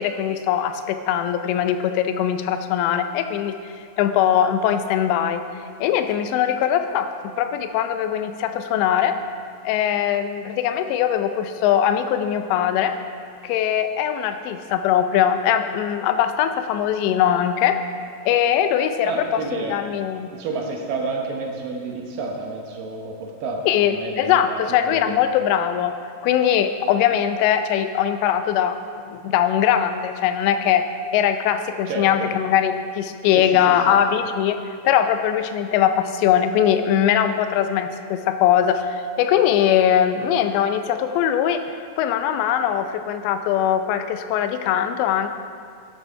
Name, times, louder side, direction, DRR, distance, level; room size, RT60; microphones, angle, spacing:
voice 1, 0.0-3.6 4.0-5.4 5.8-7.1 7.4-9.2 9.6-13.0 13.4-17.8 18.3-20.3 23.7-25.9 26.2-28.8 29.1-30.9 31.1-34.6 34.8-41.6 42.0-45.3, left 9 dB, 90° left, 9 dB, 2.9 m, -21 dB
voice 2, 19.0-19.8 20.3-25.2 31.9-32.3 33.3-33.5 33.9-34.0, right 3 dB, 70° right, 0 dB, 2.3 m, -30 dB
11.0 x 8.1 x 5.6 m, 2.2 s
omnidirectional pair, 5.0 m